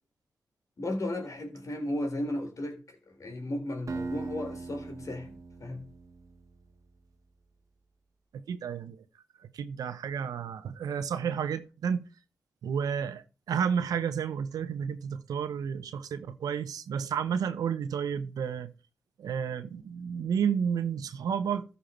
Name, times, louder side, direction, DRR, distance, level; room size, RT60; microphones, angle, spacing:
voice 1, 0.8-5.3 5.6-5.8, left 1 dB, 60° left, 3.7 m, -35 dB
Acoustic guitar, 3.9-6.9, right 3 dB, 55° right, 1.3 m, -40 dB
voice 2, 8.3-9.0 9.4-12.0 12.6-18.7 19.2-21.6, right 7 dB, 85° right, 0.9 m, -31 dB
14.0 x 5.6 x 4.4 m
supercardioid pair, 40°, 6 cm